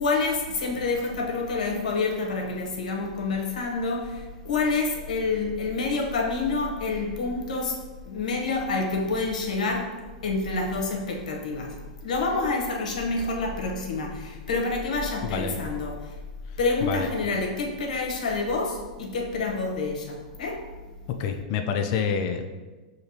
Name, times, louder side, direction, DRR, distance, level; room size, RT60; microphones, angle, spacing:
voice 1, 0.0-16.2 16.6-20.9, left 3 dB, 80° left, 0.9 m, -28 dB
voice 2, 15.2-15.5 16.8-17.1 21.2-22.5, left 7 dB, 50° left, 0.5 m, -27 dB
6.4 x 2.9 x 2.8 m
hypercardioid pair, 125°, 4 cm